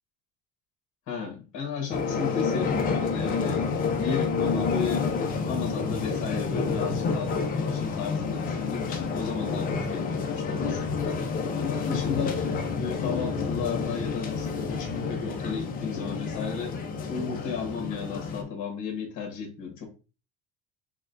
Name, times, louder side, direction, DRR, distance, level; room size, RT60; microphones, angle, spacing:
voice 1, 1.1-3.6 3.9-5.1 5.4-11.2 11.6-12.4 12.7-16.8 17.1-19.9, left 6 dB, 55° left, 1.3 m, -34 dB
sound 1, 1.9-18.4, left 5 dB, 25° left, 0.4 m, -29 dB
6.2 x 2.2 x 2.5 m
cardioid pair, 170°, 36 cm